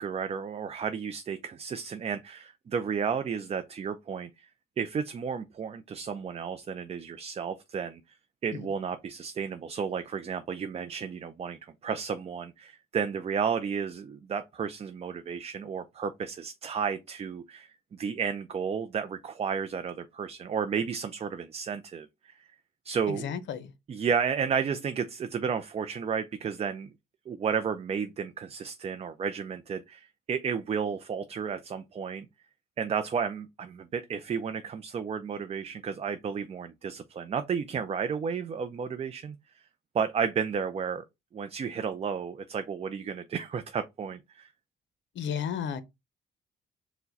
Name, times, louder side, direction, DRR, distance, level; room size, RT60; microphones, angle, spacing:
voice 1, 0.0-4.3 4.8-8.0 8.4-22.3 22.8-23.3 23.9-26.9 27.3-32.3 32.8-39.4 39.9-41.0 41.3-44.5, right 6 dB, 30° right, 0.4 m, -32 dB
voice 2, 23.1-23.7 45.1-45.8, left 8 dB, 70° left, 0.6 m, -33 dB
4.6 x 2.2 x 3.9 m
cardioid pair, 90°, 20 cm